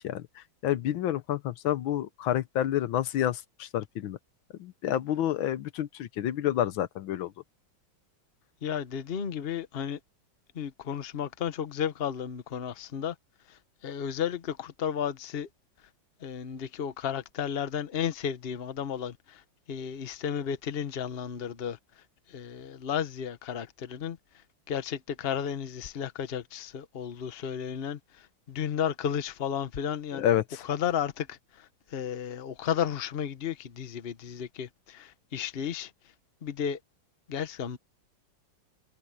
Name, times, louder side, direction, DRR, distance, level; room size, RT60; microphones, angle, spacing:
voice 1, 0.0-4.2 4.6-7.3 30.1-30.6, left 11 dB, 85° left, 1.7 m, -29 dB
voice 2, 8.6-10.0 10.5-13.1 13.5-15.5 16.2-19.4 19.7-21.8 22.3-24.2 24.7-30.3 30.6-35.9 36.4-36.8 37.3-37.8, left 8 dB, 40° left, 1.0 m, -33 dB
omnidirectional pair, 2.1 m